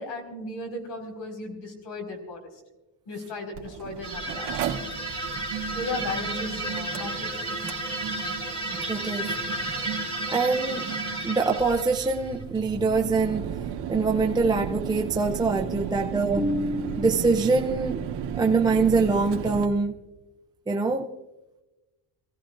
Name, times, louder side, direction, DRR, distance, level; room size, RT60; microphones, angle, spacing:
voice 1, 0.0-2.4 3.1-4.5 5.7-7.5, left 2 dB, 60° left, 4.8 m, -35 dB
Mechanical fan, 3.6-19.6, right 9 dB, 55° right, 1.8 m, -36 dB
sound 1, 4.0-12.4, right 2 dB, 10° left, 4.4 m, -32 dB
voice 2, 8.9-9.3 10.3-10.9 11.2-13.5 13.9-18.0 18.3-19.9 20.7-21.1, right 3 dB, 10° right, 0.5 m, -24 dB
28.0 x 16.5 x 2.5 m
cardioid pair, 165°, 48 cm